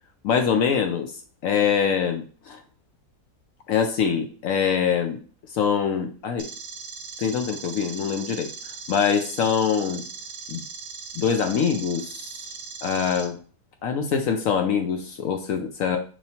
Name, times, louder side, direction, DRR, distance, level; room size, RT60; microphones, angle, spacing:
voice 1, 0.2-1.1 1.4-2.6 3.7-5.2 5.5-6.5 7.2-8.5 8.9-10.0 10.5-10.6 11.2-12.4 12.8-13.4 13.8-16.0, left 7 dB, 65° left, 5 dB, 0.8 m, -24 dB
sound 1, 6.4-13.2, right 5 dB, 55° right, 0.8 m, -39 dB
4.6 x 3.0 x 2.8 m, 0.38 s
omnidirectional pair, 1.8 m